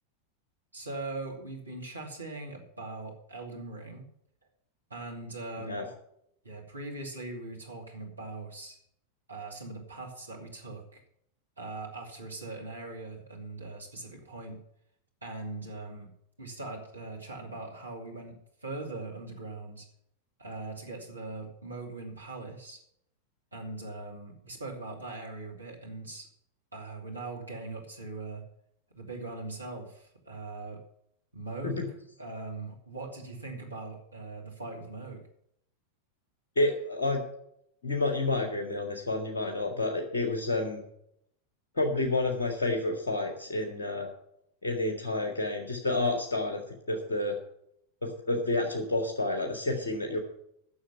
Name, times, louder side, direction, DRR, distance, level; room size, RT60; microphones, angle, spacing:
voice 1, 0.7-4.1 4.9-5.9 6.4-8.8 9.3-11.0 11.6-14.6 15.2-16.1 16.4-18.4 18.6-19.9 20.4-22.8 23.5-26.3 26.7-28.4 28.9-30.8 31.3-31.8 32.2-35.2, right 2 dB, 80° right, 1 dB, 2.6 m, -41 dB
voice 2, 36.6-37.2 37.8-40.8 41.8-44.1 44.6-46.6 46.9-47.4 48.0-50.2, left 2 dB, 65° left, 3 dB, 1.9 m, -29 dB
11.0 x 6.6 x 8.8 m, 0.72 s
figure-of-eight pair, 90°, 0 cm